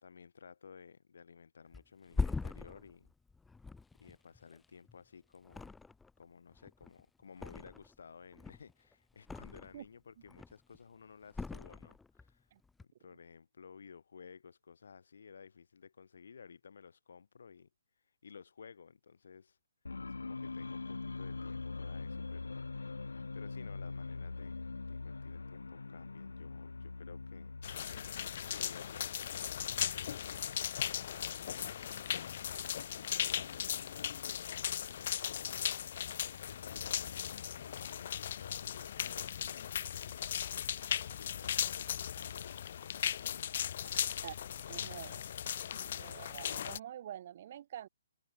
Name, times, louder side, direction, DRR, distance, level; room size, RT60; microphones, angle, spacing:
voice 1, 0.0-3.1 4.0-5.7 6.2-12.5 12.8-17.7 18.2-19.6 20.2-22.6 23.3-27.5 28.5-31.0 31.9-35.8 36.4-40.4 41.1-44.3, left 6 dB, 70° left, 2.8 m, -55 dB
Thump thud, 1.7-5.0 5.4-6.2 6.5-8.0 8.3-9.9 10.2-10.8 11.3-12.3 12.6-12.8, left 4 dB, 5° left, 0.8 m, -41 dB
sound 1, 19.8-29.4, left 3 dB, 85° left, 0.9 m, -43 dB
sound 2, 27.6-46.8, left 9 dB, 50° left, 0.3 m, -38 dB
voice 2, 44.7-45.2 45.8-47.9, right 11 dB, 50° right, 1.3 m, -47 dB
hypercardioid pair, 140°, 0 cm